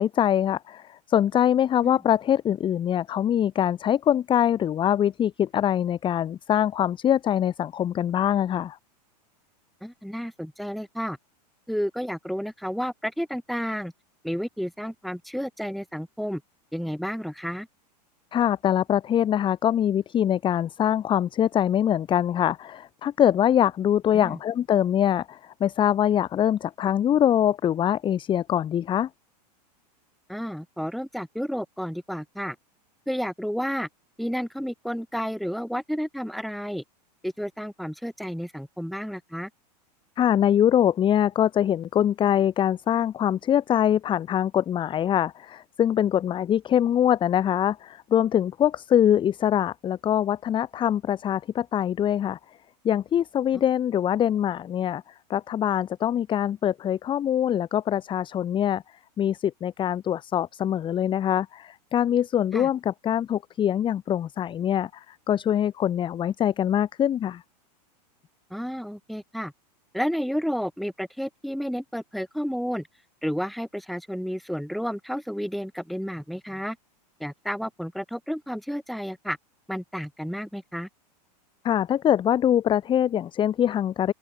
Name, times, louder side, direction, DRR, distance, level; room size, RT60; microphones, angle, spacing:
voice 1, 0.0-8.8 18.3-29.1 40.2-52.4 52.8-55.0 55.3-58.8 59.2-67.4 81.6-84.1, left 10 dB, 25° left, 0.8 m, -23 dB
voice 2, 9.8-11.2 11.7-13.9 14.2-16.4 16.7-17.7 24.1-24.4 30.3-32.6 33.1-33.9 34.2-36.8 37.2-39.5 62.5-62.7 68.5-69.5 69.9-72.9 73.2-76.8 77.2-79.4 79.7-80.9, equal, ahead, 3.5 m, -31 dB
open air
hypercardioid pair, 115°, 21 cm